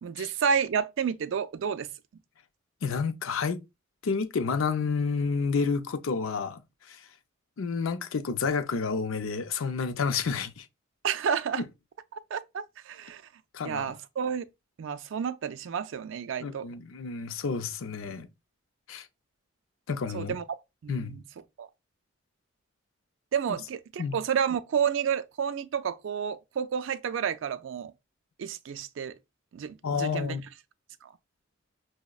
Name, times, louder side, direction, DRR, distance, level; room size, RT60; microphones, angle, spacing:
voice 1, 0.0-1.9 11.0-11.6 12.1-13.2 13.6-14.4 14.8-16.7 20.1-20.6 20.8-21.2 21.6-21.7 23.3-27.9 28.4-29.2 29.5-30.4 31.0-31.1, right 7 dB, 70° right, 0.3 m, -30 dB
voice 2, 2.8-3.6 4.0-6.6 6.9-7.0 7.6-10.7 11.6-11.7 13.5-13.9 16.4-18.3 18.9-19.1 19.9-20.4 20.9-21.2 24.0-24.2 29.8-30.4, left 5 dB, 80° left, 0.5 m, -30 dB
5.8 x 2.1 x 2.3 m
head